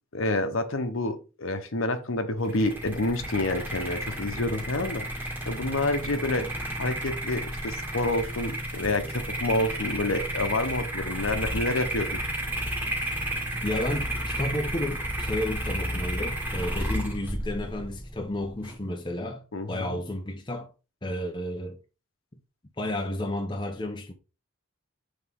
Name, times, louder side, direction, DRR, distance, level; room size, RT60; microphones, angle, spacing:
voice 1, 0.1-12.2 19.5-20.0, left 2 dB, 65° left, 0.9 m, -28 dB
sound 1, 2.4-18.8, right 1 dB, 10° right, 1.8 m, -32 dB
voice 2, 13.6-20.7 21.0-21.8 22.8-24.1, left 1 dB, 20° left, 0.7 m, -32 dB
7.7 x 3.6 x 3.5 m
head